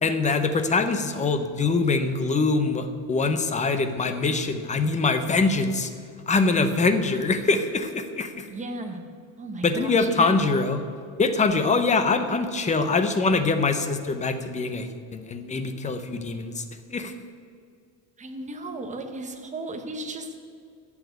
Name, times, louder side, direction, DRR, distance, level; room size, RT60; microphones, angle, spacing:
voice 1, 0.0-5.9 6.3-8.5 9.6-10.8 11.2-16.6 16.9-17.1, left 3 dB, 15° left, 9 dB, 0.6 m, -24 dB
voice 2, 8.5-9.0 9.4-10.5 18.2-20.3, right 2 dB, 15° right, 4 dB, 0.9 m, -35 dB
11.5 x 7.2 x 9.1 m, 2.2 s
cardioid pair, 180°, 47 cm